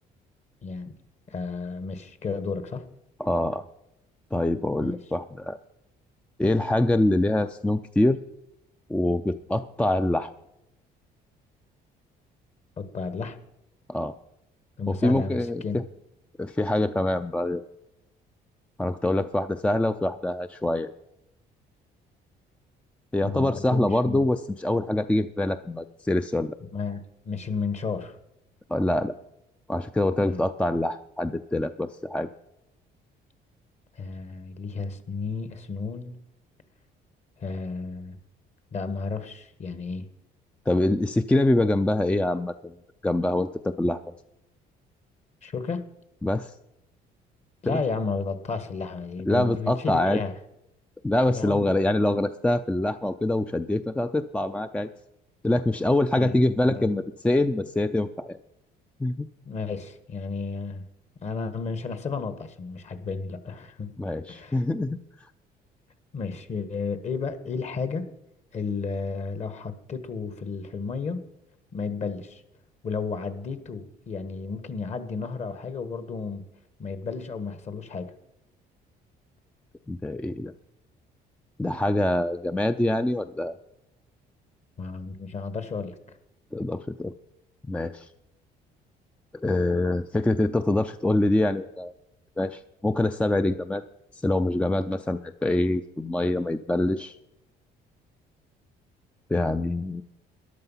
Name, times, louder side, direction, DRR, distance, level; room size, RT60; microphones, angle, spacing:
voice 1, 0.6-0.9 1.3-2.8 4.8-5.0 12.8-13.4 14.8-15.8 23.2-24.2 26.7-28.2 30.2-30.4 34.0-36.2 37.4-38.2 38.7-40.1 45.4-45.8 47.6-50.3 51.3-51.7 56.2-56.4 56.6-57.0 59.4-60.8 61.2-63.9 64.3-64.6 66.1-68.1 68.5-71.2 71.7-72.4 72.8-76.5 76.8-78.1 84.8-86.2, left 4 dB, 40° left, 12 dB, 1.4 m, -32 dB
voice 2, 3.2-3.6 4.3-5.6 6.4-8.2 8.9-10.3 13.9-14.1 14.9-15.8 16.4-17.6 18.8-20.9 23.1-26.5 28.7-29.1 29.7-32.3 40.7-42.7 43.0-44.0 46.2-46.5 47.7-47.8 49.3-50.2 51.0-54.9 55.4-58.4 59.0-59.3 64.0-65.0 79.9-80.5 81.6-83.5 86.5-87.1 87.7-88.1 89.4-91.9 92.4-93.8 94.2-97.2 99.3-100.0, left 1 dB, 5° left, 10 dB, 0.4 m, -25 dB
13.5 x 11.0 x 5.6 m, 0.84 s
cardioid pair, 110°, 17 cm